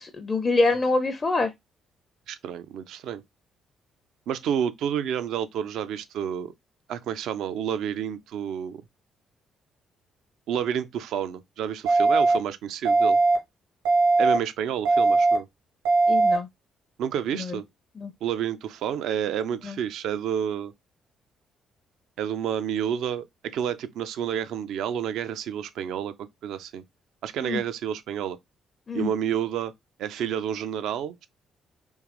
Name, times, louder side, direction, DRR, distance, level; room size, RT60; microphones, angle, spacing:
voice 1, 0.0-1.5 16.1-16.5 18.0-18.1 19.6-19.8 27.4-27.6 28.9-29.1, left 3 dB, 35° left, 0.5 m, -25 dB
voice 2, 2.3-3.2 4.3-6.5 6.9-8.8 10.5-13.2 14.2-15.5 17.0-17.6 18.2-20.7 22.2-26.8 27.2-28.4 28.9-29.7 30.0-31.3, right 9 dB, 60° right, 0.4 m, -29 dB
sound 1, 11.9-12.4 12.9-13.4 13.9-14.4 14.9-15.4 15.9-16.4, right 3 dB, 80° right, 1.2 m, -19 dB
3.6 x 2.9 x 2.9 m
figure-of-eight pair, 45°, 0 cm